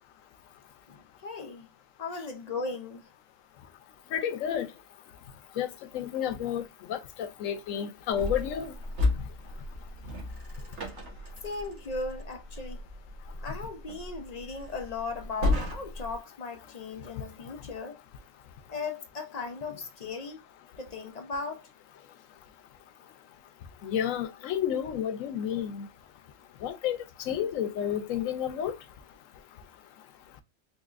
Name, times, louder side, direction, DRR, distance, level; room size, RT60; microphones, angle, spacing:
voice 1, 0.9-1.7 2.0-3.1 11.4-12.8 13.4-18.0 18.7-20.4 20.8-21.7, left 4 dB, 55° left, 0.4 m, -37 dB
voice 2, 4.1-4.7 5.6-5.7 5.9-6.6 6.9-8.7 23.8-25.9 26.6-27.0 27.3-28.7, left 9 dB, 80° left, 1.0 m, -30 dB
sound 1, 8.1-16.2, left 2 dB, 60° right, 1.3 m, -34 dB
4.0 x 2.8 x 2.4 m
omnidirectional pair, 1.4 m